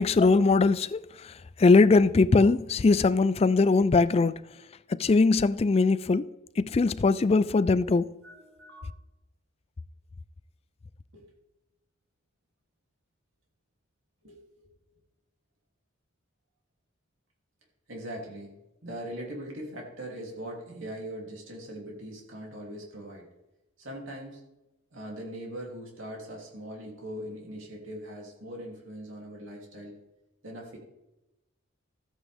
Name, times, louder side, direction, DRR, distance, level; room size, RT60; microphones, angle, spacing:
voice 1, 0.0-4.4 4.9-6.3 6.6-8.1, left 3 dB, 30° left, 0.3 m, -21 dB
voice 2, 8.2-8.9 11.1-11.2 14.2-14.7 17.9-18.5 18.8-23.3 23.8-24.4 24.9-30.0 30.4-30.8, right 1 dB, 75° right, 3.0 m, -41 dB
13.5 x 9.1 x 3.6 m
head